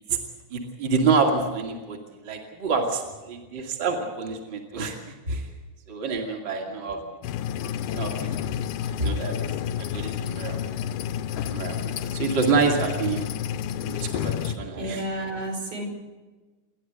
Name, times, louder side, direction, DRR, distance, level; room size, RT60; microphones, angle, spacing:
voice 1, 0.5-5.5 5.9-7.0 7.9-8.1 8.9-9.4 9.8-10.6 11.5-13.3 13.8-15.0, right 4 dB, 35° right, 1 dB, 2.9 m, -27 dB
voice 2, 6.5-7.1 14.6-15.8, right 1 dB, 75° right, 0 dB, 7.2 m, -33 dB
sound 1, 7.2-14.6, left 9 dB, 85° left, 2.3 m, -30 dB
29.0 x 11.5 x 8.0 m, 1.2 s
omnidirectional pair, 3.5 m